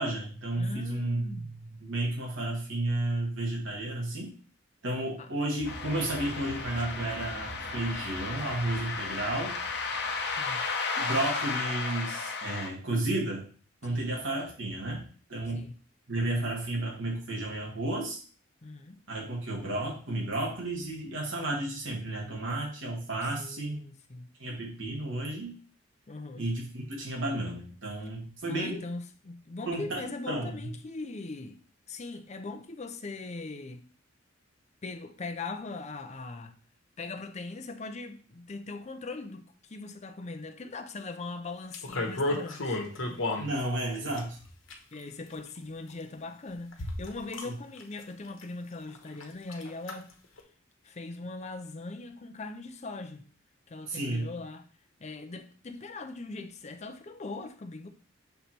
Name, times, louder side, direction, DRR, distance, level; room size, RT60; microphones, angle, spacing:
voice 1, 0.0-4.3 4.8-9.6 11.0-13.5 13.8-15.0 15.3-15.6 16.1-18.2 19.1-23.8 24.4-25.6 26.4-28.8 29.7-30.5 43.4-44.4 47.5-47.6 53.9-54.3, right 1 dB, 70° right, 2.0 m, -32 dB
voice 2, 0.6-1.5 5.2-5.3 10.4-10.6 13.9-14.2 15.5-15.8 18.6-19.0 23.2-24.3 26.1-26.5 28.5-31.6 31.9-33.8 34.8-36.6 37.0-42.8 43.1-43.2 44.9-50.1 50.8-53.3 53.7-54.7 55.0-57.9, left 3 dB, 35° left, 0.6 m, -40 dB
sound 1, 5.6-12.7, left 4 dB, 55° left, 1.0 m, -34 dB
sound 2, 5.6-10.7, right 2 dB, 25° right, 1.0 m, -46 dB
sound 3, 41.7-43.5 44.2-45.0 45.9-46.0 46.7-47.4 47.8-48.0 48.4-48.5 48.9-49.2 49.5-49.9 50.4-50.5, left 2 dB, 80° left, 1.1 m, -32 dB
6.7 x 3.2 x 4.4 m
head